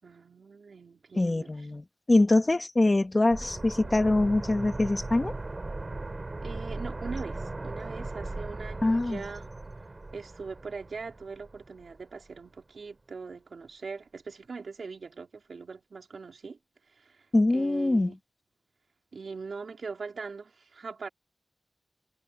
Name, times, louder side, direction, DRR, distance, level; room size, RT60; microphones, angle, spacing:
voice 1, 0.0-1.7 6.4-9.5 10.1-16.6 16.9-18.2 19.1-21.1, right 4 dB, 80° right, 4.0 m, -41 dB
voice 2, 1.2-5.4 8.8-9.2 17.3-18.1, left 2 dB, 35° left, 2.1 m, -24 dB
sound 1, 3.3-12.0 12.3-12.4, right 2 dB, 35° right, 6.6 m, -38 dB
wide cardioid pair, 75°, 0 cm